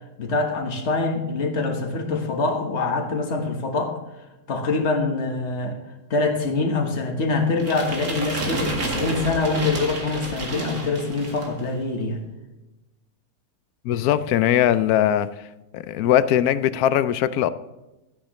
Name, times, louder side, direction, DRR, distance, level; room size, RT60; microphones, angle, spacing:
voice 1, 0.2-4.0 4.5-5.8 6.1-12.2, left 3 dB, 50° left, 3 dB, 1.6 m, -24 dB
sound 1, 7.6-11.6, right 2 dB, 75° right, 2.4 m, -30 dB
voice 2, 13.8-15.5 15.7-17.5, left 11 dB, 85° left, 15 dB, 1.1 m, -20 dB
13.0 x 10.0 x 3.1 m, 1.0 s
omnidirectional pair, 1.6 m